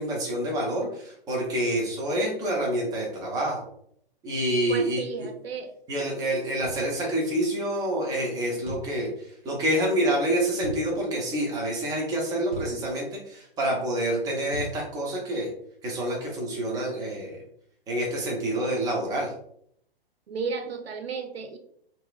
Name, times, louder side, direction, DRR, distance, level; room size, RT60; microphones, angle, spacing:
voice 1, 0.0-3.6 4.2-5.0 5.9-9.1 9.4-15.5 15.8-17.4 17.9-19.3, right 1 dB, 10° right, -2 dB, 0.6 m, -27 dB
voice 2, 4.7-5.7 20.3-21.6, right 5 dB, 80° right, 7 dB, 0.5 m, -33 dB
sound 1, 6.6-6.9 8.7-8.9 10.6-10.8 12.5-12.8 14.5-14.8, right 1 dB, 50° right, 1.0 m, -37 dB
2.8 x 2.4 x 2.3 m, 0.67 s
figure-of-eight pair, 120°, 30 cm